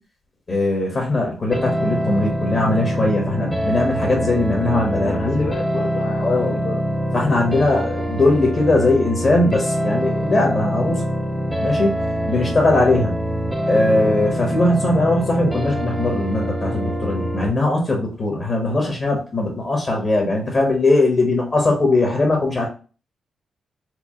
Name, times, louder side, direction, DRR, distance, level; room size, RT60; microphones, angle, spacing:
voice 1, 0.5-5.5 6.2-6.6 7.1-11.0 11.6-11.9 12.3-13.1 13.7-22.7, left 2 dB, 35° left, 0 dB, 1.0 m, -20 dB
sound 1, 1.5-17.5, equal, ahead, 0.5 m, -24 dB
voice 2, 4.6-6.8 12.2-12.6, left 5 dB, 80° left, 0 dB, 0.6 m, -32 dB
4.6 x 2.1 x 3.6 m, 0.36 s
wide cardioid pair, 145°, 0 cm